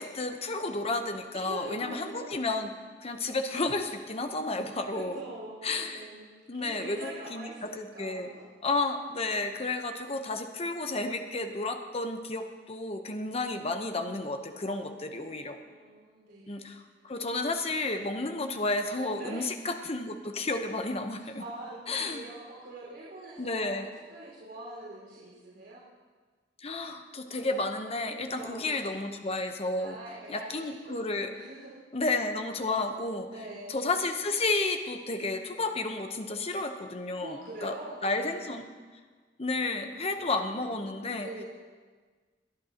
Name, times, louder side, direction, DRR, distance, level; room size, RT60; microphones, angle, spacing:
voice 1, 0.0-2.7 3.0-5.2 5.6-6.1 6.5-8.3 8.6-15.6 16.5-21.4 21.9-22.2 23.4-23.9 26.6-30.0 30.3-31.3 31.9-33.3 33.7-37.7 38.0-38.6 39.4-41.3, left 2 dB, 35° left, 6 dB, 0.9 m, -32 dB
voice 2, 1.3-2.2 4.9-8.5 14.6-16.8 19.1-19.6 21.4-25.8 28.3-29.2 29.8-31.1 31.3-31.8 33.3-33.8 37.2-38.5 39.9-41.5, right 2 dB, 70° right, -7 dB, 4.7 m, -44 dB
23.0 x 10.5 x 2.9 m, 1.5 s
head